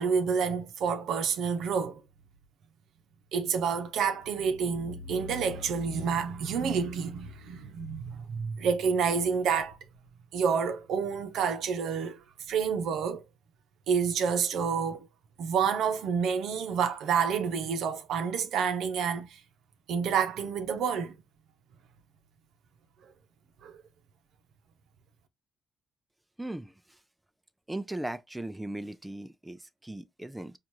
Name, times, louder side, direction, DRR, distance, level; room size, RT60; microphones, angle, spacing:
voice 1, 0.0-2.0 3.3-9.8 10.3-12.2 12.5-13.2 13.9-15.1 15.4-19.4 19.9-21.2 23.6-23.8, right 6 dB, 80° right, 0.7 m, -29 dB
voice 2, 26.4-27.0 27.7-30.5, right 1 dB, 10° right, 0.5 m, -38 dB
4.5 x 2.5 x 2.7 m
cardioid pair, 90°, 0 cm